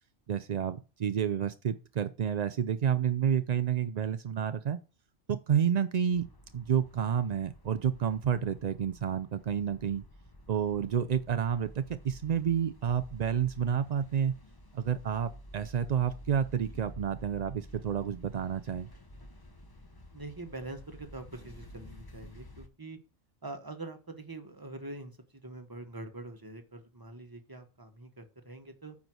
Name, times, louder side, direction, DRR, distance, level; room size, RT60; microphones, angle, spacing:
voice 1, 0.3-4.8 5.3-6.3 6.5-10.0 10.5-14.4 14.7-18.9, right 8 dB, 65° right, 0.4 m, -30 dB
sound 1, 6.1-22.7, equal, 20° left, 0.7 m, -50 dB
voice 2, 20.1-23.0 23.4-25.2 25.4-29.0, right 2 dB, 20° right, 1.2 m, -44 dB
9.2 x 4.7 x 6.2 m
omnidirectional pair, 1.3 m